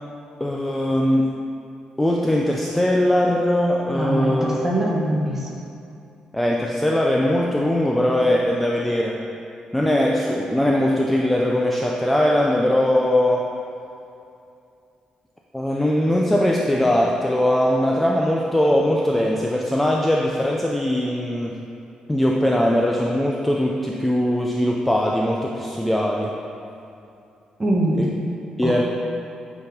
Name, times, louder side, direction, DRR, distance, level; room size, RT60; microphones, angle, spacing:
voice 1, 0.4-1.3 2.0-4.6 6.3-9.2 9.7-13.5 15.5-21.6 22.1-26.3 28.0-28.1 28.6-28.8, left 1 dB, 5° left, -2 dB, 0.4 m, -20 dB
voice 2, 3.9-5.5 27.6-28.0 28.6-28.8, right 1 dB, 15° right, -3 dB, 1.0 m, -22 dB
8.6 x 4.0 x 4.3 m, 2.6 s
wide cardioid pair, 170°, 2 cm